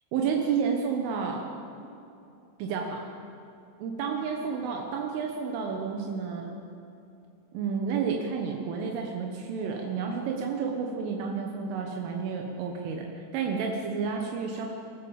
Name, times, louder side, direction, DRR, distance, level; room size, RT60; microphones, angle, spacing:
voice 1, 0.1-1.5 2.6-3.0 3.8-6.5 7.5-14.7, right 6 dB, 85° right, 1 dB, 3.9 m, -30 dB
26.0 x 14.0 x 7.3 m, 2.7 s
omnidirectional pair, 5.6 m